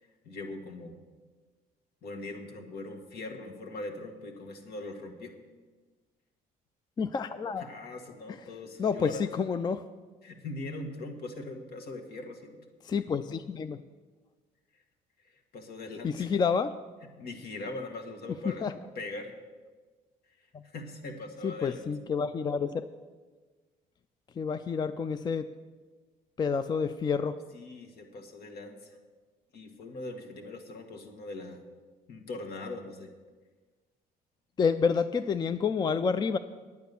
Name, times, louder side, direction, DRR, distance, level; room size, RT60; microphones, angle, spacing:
voice 1, 0.2-1.0 2.0-5.4 7.6-9.2 10.2-12.6 15.2-16.3 17.2-18.7 19.0-19.3 20.6-21.8 27.5-29.0 29.5-31.6 32.1-33.1, left 2 dB, 70° left, 4 dB, 1.8 m, -41 dB
voice 2, 7.0-7.7 8.8-9.8 12.8-13.8 16.0-16.7 18.4-18.7 20.5-20.6 21.4-22.9 24.4-25.4 26.4-27.4 34.6-36.4, left 5 dB, 25° left, 12 dB, 0.4 m, -29 dB
9.4 x 9.3 x 6.9 m, 1.4 s
cardioid pair, 110°, 17 cm